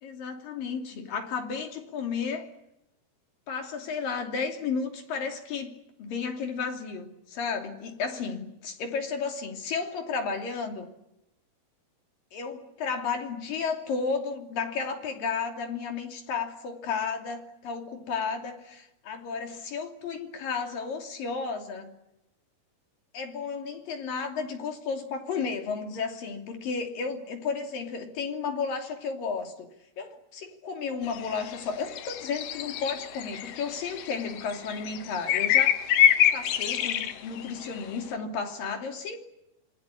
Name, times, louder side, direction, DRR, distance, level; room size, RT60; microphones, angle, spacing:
voice 1, 0.0-2.5 3.5-5.7 6.0-10.9 12.3-22.0 23.1-29.7 30.0-35.8 36.3-39.2, left 5 dB, 65° left, 3 dB, 4.6 m, -33 dB
sound 1, 31.1-31.6 31.9-37.8, left 10 dB, 85° left, 3.3 m, -26 dB
27.0 x 21.5 x 10.0 m, 0.87 s
omnidirectional pair, 4.4 m